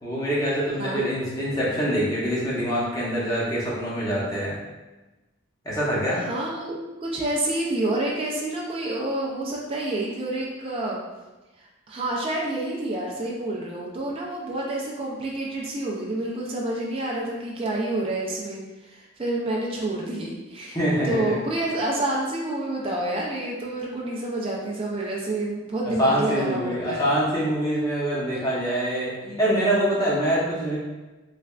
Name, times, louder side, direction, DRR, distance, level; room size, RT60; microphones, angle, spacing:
voice 1, 0.0-4.6 5.6-6.2 20.7-21.4 26.0-30.8, equal, 15° left, -7 dB, 0.8 m, -25 dB
voice 2, 6.1-11.0 11.6-20.8 21.0-27.1 28.3-28.4, right 1 dB, 25° right, -3 dB, 0.4 m, -28 dB
3.3 x 3.2 x 2.4 m, 1.1 s
head